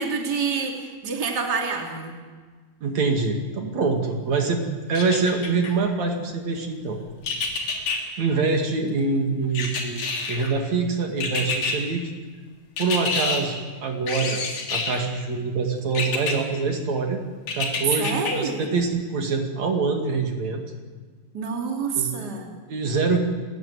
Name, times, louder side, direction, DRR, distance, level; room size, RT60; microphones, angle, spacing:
voice 1, 0.0-2.1 18.0-18.7 21.3-22.5, right 5 dB, 35° right, 2 dB, 3.1 m, -27 dB
voice 2, 2.8-7.0 7.9-12.1 12.8-14.4 14.7-17.2 17.5-20.6 22.0-22.1 22.7-23.2, right 4 dB, 65° right, 3 dB, 3.5 m, -25 dB
sound 1, 4.9-5.7 7.2-8.0 9.5-10.5 11.2-11.8 12.8-13.4 14.1-15.0 15.9-16.3 17.5-18.3 18.8-18.9, left 4 dB, 85° left, 4.7 m, -27 dB
29.0 x 14.5 x 9.7 m, 1.5 s
omnidirectional pair, 3.5 m